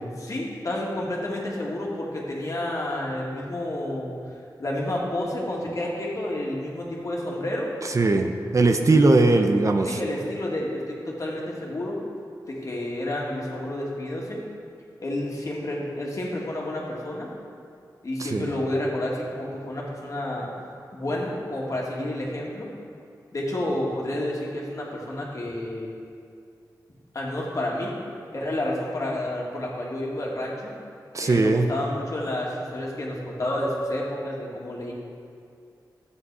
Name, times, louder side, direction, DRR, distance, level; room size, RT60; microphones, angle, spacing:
voice 1, 0.2-4.1 4.6-7.7 8.9-9.0 9.8-12.0 12.5-14.4 15.0-17.3 18.0-20.5 20.9-22.7 23.3-25.9 27.1-28.0 28.3-30.7 31.2-34.9, left 1 dB, 50° left, -3 dB, 2.2 m, -30 dB
voice 2, 7.9-10.0 18.2-18.6 31.1-31.7, right 2 dB, 45° right, 5 dB, 0.7 m, -20 dB
12.0 x 8.4 x 4.8 m, 2.3 s
wide cardioid pair, 95°, 7 cm